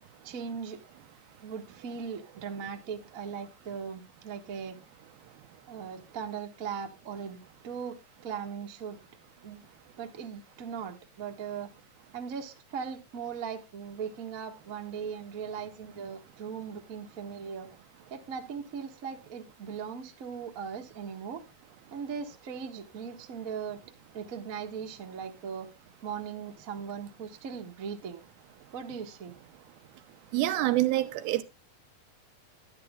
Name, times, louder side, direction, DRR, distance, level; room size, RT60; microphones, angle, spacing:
voice 1, 0.2-0.8 1.4-4.7 5.7-7.4 7.6-8.0 8.2-9.0 9.4-9.6 10.0-11.7 12.1-17.7 18.1-21.4 21.9-23.8 24.1-25.7 26.0-28.2 28.7-29.3, right 6 dB, 60° right, 0.8 m, -39 dB
voice 2, 30.3-31.4, right 16 dB, 85° right, 2.8 m, -26 dB
11.0 x 10.5 x 3.6 m
omnidirectional pair, 4.2 m